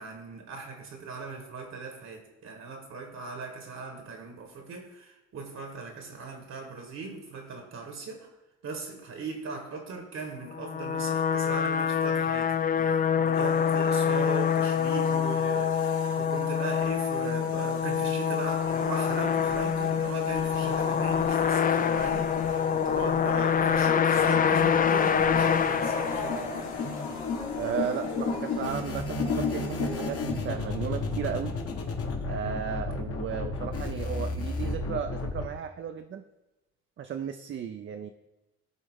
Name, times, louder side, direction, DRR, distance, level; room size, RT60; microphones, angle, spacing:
voice 1, 0.0-8.3 8.6-26.9, right 4 dB, 60° right, 4 dB, 1.3 m, -39 dB
sound 1, 10.5-26.8, left 7 dB, 30° left, 0.4 m, -26 dB
sound 2, 13.3-30.3, left 4 dB, 65° left, 1.9 m, -37 dB
voice 2, 27.5-31.6 32.3-36.2 37.0-38.1, right 8 dB, 40° right, 7 dB, 0.4 m, -35 dB
sound 3, 28.6-35.4, left 2 dB, 50° left, 1.2 m, -33 dB
12.0 x 4.0 x 3.6 m, 1.0 s
cardioid pair, 90°, 30 cm